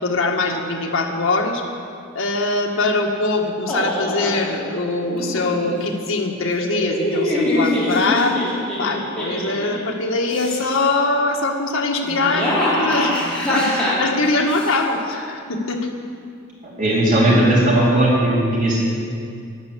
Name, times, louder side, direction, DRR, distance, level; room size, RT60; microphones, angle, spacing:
voice 1, 0.0-1.6 2.1-8.4 8.8-13.2 13.5-15.9, left 2 dB, 65° left, 1 dB, 1.6 m, -22 dB
sound 1, 3.7-4.4 5.1-5.8 6.6-9.8 10.2-10.9 12.0-14.7, left 1 dB, 5° left, 3.2 m, -23 dB
voice 2, 16.6-18.8, right 1 dB, 40° right, -6 dB, 2.9 m, -17 dB
11.5 x 11.0 x 8.1 m, 2.3 s
head